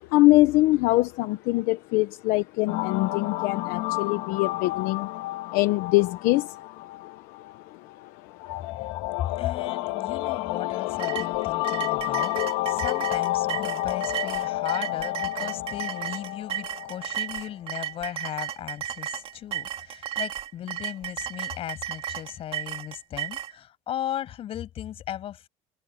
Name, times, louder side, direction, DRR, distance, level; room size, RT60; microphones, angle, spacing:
voice 1, 0.0-5.1 5.5-6.6 7.0-7.1 7.7-8.1 8.4-8.5, left 19 dB, 65° left, 1.0 m, -23 dB
sound 1, 2.7-17.9, left 18 dB, 85° left, 1.6 m, -30 dB
voice 2, 9.2-25.5, left 11 dB, 35° left, 6.5 m, -36 dB
sound 2, 11.0-23.5, right 10 dB, 35° right, 2.6 m, -34 dB
cardioid pair, 180°, 16 cm